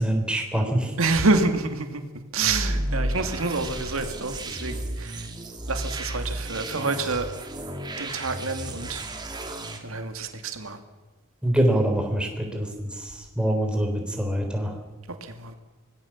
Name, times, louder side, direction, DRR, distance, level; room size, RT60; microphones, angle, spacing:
voice 1, 0.0-0.9 11.4-14.7, right 1 dB, 5° right, 3 dB, 3.7 m, -25 dB
voice 2, 1.0-5.3 5.7-7.3 8.0-9.0 9.8-10.8 15.2-15.5, right 3 dB, 70° right, 7 dB, 2.4 m, -27 dB
sound 1, 2.4-9.8, right 1 dB, 20° right, 2.6 m, -32 dB
25.0 x 19.0 x 7.3 m, 1.2 s
head